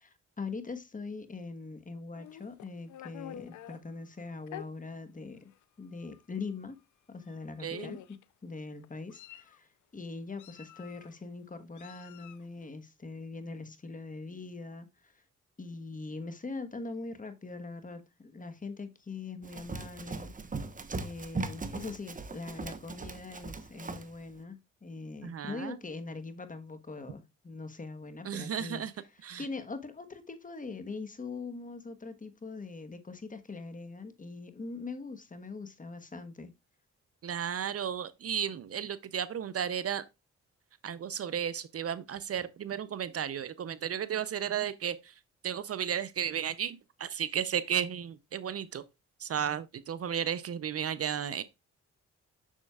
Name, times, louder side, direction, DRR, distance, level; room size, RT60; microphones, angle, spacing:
voice 1, 0.0-5.5 5.8-6.8 7.1-8.0 8.4-15.1 15.6-20.3 20.9-28.8 29.4-36.5, left 3 dB, 25° left, 1.3 m, -42 dB
Meow, 2.1-3.8 4.5-4.7 5.5-5.6 6.0-6.2 7.2-7.3 7.7-8.2 8.8-9.6 10.4-11.1 11.8-12.5, left 12 dB, 80° left, 0.6 m, -47 dB
voice 2, 7.6-8.0 25.2-25.8 28.2-28.9 29.2-29.5 37.2-40.0 40.8-45.1 45.4-48.8 49.2-51.4, right 8 dB, 50° right, 0.6 m, -34 dB
Run, 19.4-24.1, right 3 dB, 25° right, 1.0 m, -39 dB
7.4 x 6.4 x 2.4 m
cardioid pair, 75°, 29 cm